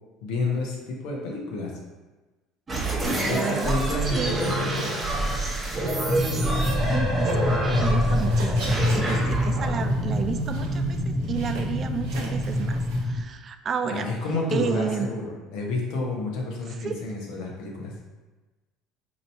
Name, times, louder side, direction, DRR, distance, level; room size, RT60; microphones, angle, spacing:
voice 1, 0.2-1.7 3.3-4.9 13.9-17.9, left 2 dB, 70° left, -1 dB, 0.8 m, -30 dB
sound 1, 2.7-10.9, right 1 dB, 25° right, 0.9 m, -27 dB
voice 2, 3.2-3.8 4.2-4.3 6.1-7.3 7.7-14.1 14.5-15.1 16.8-16.9, right 6 dB, 40° right, 8 dB, 0.3 m, -32 dB
sound 2, 6.1-13.2, left 1 dB, 35° left, 0.5 m, -26 dB
sound 3, 7.3-7.8 8.1-13.0, right 1 dB, 85° right, 0.9 m, -41 dB
2.9 x 2.6 x 4.3 m, 1.2 s
hypercardioid pair, 75°, 0 cm